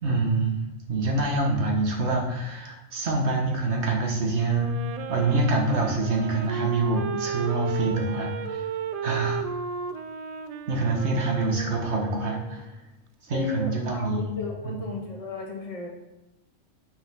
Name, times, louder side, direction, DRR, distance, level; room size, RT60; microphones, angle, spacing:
voice 1, 0.0-0.5 0.9-4.7 5.1-8.7 9.0-9.4 10.7-12.8 13.2-14.3 14.6-14.8, right 2 dB, 70° right, 0 dB, 1.7 m, -26 dB
Wind instrument woodwind instrument, 4.4-12.8, right 7 dB, 90° right, 0.3 m, -34 dB
voice 2, 13.3-15.9, left 3 dB, 30° left, -2 dB, 1.6 m, -34 dB
5.7 x 5.4 x 5.7 m, 0.94 s
omnidirectional pair, 1.2 m